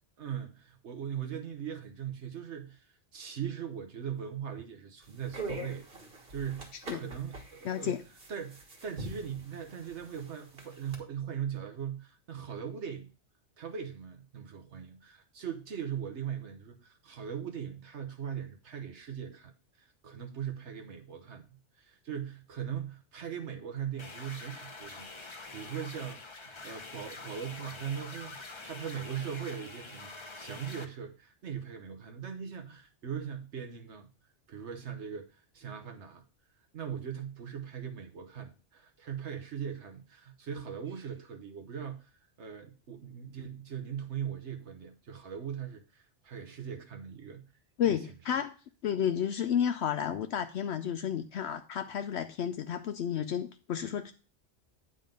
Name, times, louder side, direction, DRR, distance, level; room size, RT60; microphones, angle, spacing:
voice 1, 0.2-5.8 6.3-7.9 8.3-13.1 13.6-19.5 19.8-21.5 21.8-28.4 28.6-34.1 34.5-36.2 36.7-42.1 42.4-47.4 47.8-48.0, right 8 dB, 75° right, 1.2 m, -40 dB
sound 1, 5.0-11.0, right 2 dB, 55° right, 1.7 m, -44 dB
voice 2, 7.6-8.0 47.8-48.5 48.8-54.1, left 9 dB, 70° left, 0.8 m, -31 dB
sound 2, 24.0-30.8, left 3 dB, 25° left, 0.8 m, -46 dB
9.1 x 4.0 x 5.2 m
omnidirectional pair, 1.2 m